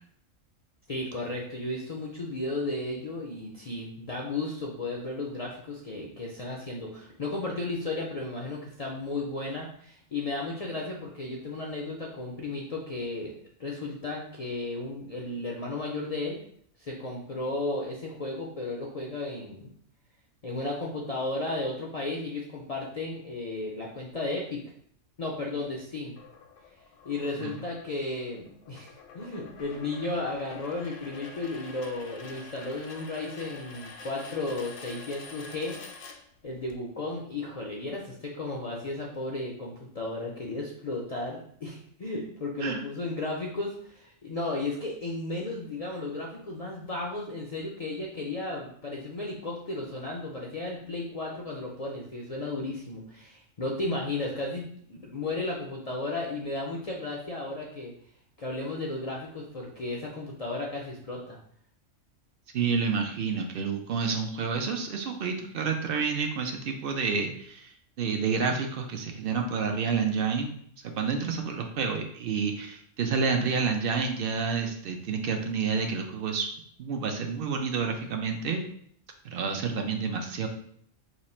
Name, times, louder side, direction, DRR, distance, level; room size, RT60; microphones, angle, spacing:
voice 1, 0.9-13.3 13.6-16.4 16.8-19.7 20.4-24.7 25.2-26.1 27.0-35.8 36.4-57.9 58.4-61.4, left 2 dB, 60° left, -2 dB, 0.4 m, -34 dB
sound 1, 26.2-36.7, left 4 dB, 80° left, 0.9 m, -47 dB
voice 2, 62.5-76.5 76.8-78.6 79.2-80.5, right 5 dB, 60° right, 4 dB, 0.6 m, -29 dB
3.0 x 2.4 x 4.1 m, 0.63 s
omnidirectional pair, 1.3 m